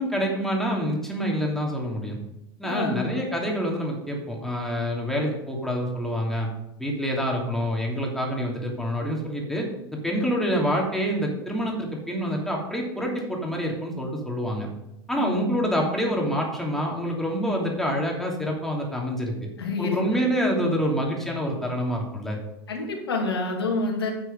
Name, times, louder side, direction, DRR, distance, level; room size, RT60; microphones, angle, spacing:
voice 1, 0.0-2.2 2.6-6.5 6.8-14.7 15.1-19.3 19.8-22.4, equal, 5° left, -1 dB, 2.9 m, -27 dB
voice 2, 2.6-3.2 15.1-15.6 19.6-20.2 22.7-24.1, left 3 dB, 90° left, 1 dB, 2.3 m, -28 dB
9.4 x 6.3 x 5.4 m, 0.86 s
hypercardioid pair, 95°, 13 cm